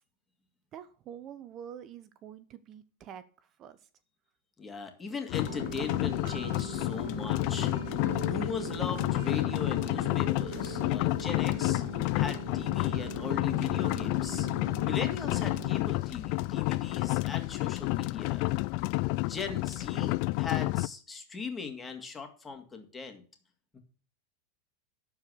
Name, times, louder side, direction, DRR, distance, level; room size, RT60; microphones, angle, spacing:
voice 1, 0.7-3.8, right 9 dB, 40° right, 14 dB, 0.8 m, -46 dB
voice 2, 4.6-7.9 8.2-11.8 12.1-14.5 14.8-18.5 19.3-23.2 23.7-23.8, left 5 dB, 15° left, 5 dB, 2.5 m, -39 dB
sound 1, 5.3-20.9, left 23 dB, 55° left, 0.4 m, -30 dB
sound 2, 5.4-15.7, right 8 dB, 65° right, 1.8 m, -42 dB
12.0 x 4.7 x 7.0 m, 0.40 s
hypercardioid pair, 110°, 0 cm